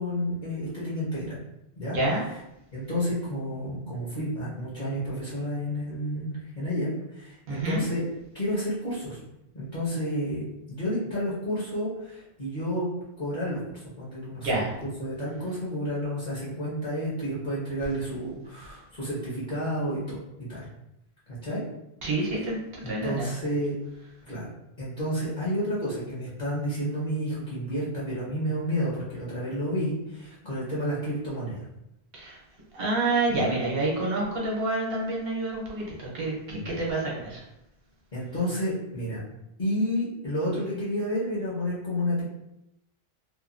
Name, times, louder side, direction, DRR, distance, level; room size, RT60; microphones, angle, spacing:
voice 1, 0.0-1.4 1.8-2.0 2.7-8.0 8.3-9.2 9.5-12.9 13.2-14.7 15.0-20.7 21.4-21.6 22.8-23.8 24.3-24.5 24.8-31.6 33.3-33.5 36.5-36.7 38.1-39.2 39.6-42.2, equal, 50° left, -8 dB, 1.1 m, -30 dB
voice 2, 7.5-7.8 14.4-14.7 22.0-23.3 32.1-32.4 32.7-37.4, right 2 dB, 65° right, -3 dB, 1.0 m, -28 dB
2.9 x 2.2 x 2.4 m, 0.85 s
omnidirectional pair, 1.1 m